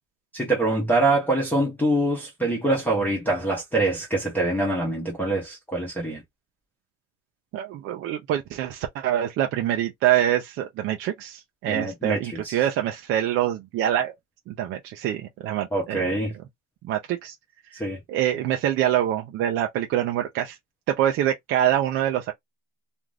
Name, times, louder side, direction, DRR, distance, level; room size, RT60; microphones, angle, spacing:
voice 1, 0.3-6.2 11.7-12.6 15.7-16.3 17.7-18.0, right 2 dB, 5° left, 0.7 m, -24 dB
voice 2, 7.5-14.1 14.5-16.1 16.8-17.4 17.7-20.6 20.9-22.3, right 11 dB, 40° right, 0.4 m, -25 dB
2.5 x 2.4 x 3.2 m
cardioid pair, 165°, 33 cm